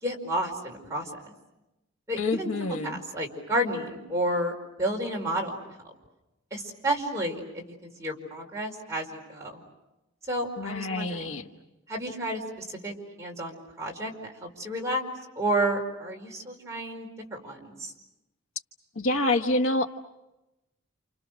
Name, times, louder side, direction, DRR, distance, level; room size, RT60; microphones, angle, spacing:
voice 1, 0.0-1.1 2.1-5.6 5.8-5.9 6.5-7.4 7.8-9.6 10.3-11.4 11.9-15.0 15.4-17.9, right 1 dB, 15° right, -1 dB, 4.8 m, -31 dB
voice 2, 2.2-3.0 10.6-11.4 18.9-19.9, left 2 dB, 75° left, 5 dB, 1.3 m, -27 dB
29.5 x 28.0 x 6.3 m, 0.96 s
head